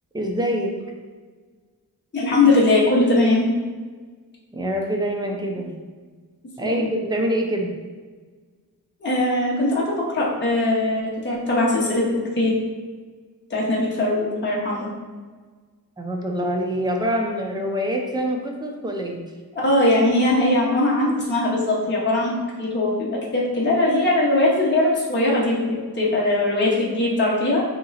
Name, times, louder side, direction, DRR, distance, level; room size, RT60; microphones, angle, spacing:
voice 1, 0.1-0.7 4.5-5.7 6.6-7.7 16.0-19.2, equal, 10° right, 1 dB, 0.6 m, -25 dB
voice 2, 2.1-3.4 6.6-6.9 9.0-12.1 12.4-12.5 13.5-14.9 19.6-27.6, left 2 dB, 30° left, -5 dB, 1.0 m, -20 dB
3.7 x 3.0 x 4.0 m, 1.5 s
wide cardioid pair, 85°, 40 cm